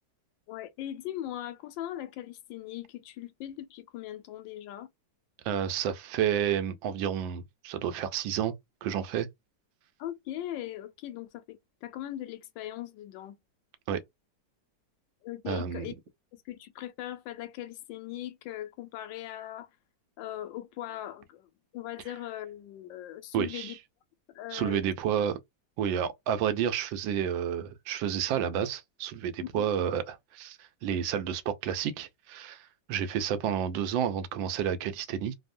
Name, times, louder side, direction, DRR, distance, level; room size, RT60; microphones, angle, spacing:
voice 1, 0.5-4.9 10.0-13.4 15.2-15.9 16.3-19.7 20.2-23.8 24.3-24.8 29.4-29.7, left 13 dB, 80° left, 1.3 m, -40 dB
voice 2, 5.4-8.5 8.8-9.3 13.9-14.0 15.5-15.9 23.3-23.7 24.5-25.4 25.8-35.3, right 9 dB, 85° right, 1.3 m, -30 dB
3.5 x 2.0 x 2.5 m
omnidirectional pair, 2.0 m